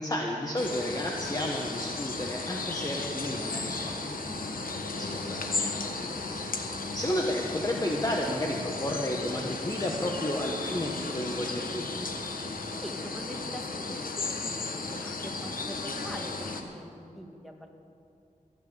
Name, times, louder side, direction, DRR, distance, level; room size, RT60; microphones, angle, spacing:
voice 1, 0.0-4.6 4.9-12.1, left 1 dB, 25° left, 0 dB, 1.3 m, -33 dB
sound 1, 0.6-16.6, left 3 dB, 85° left, 1.3 m, -35 dB
voice 2, 12.8-15.3 15.6-17.7, equal, ahead, 2 dB, 1.8 m, -43 dB
14.5 x 11.0 x 8.0 m, 2.5 s
wide cardioid pair, 80°, 14 cm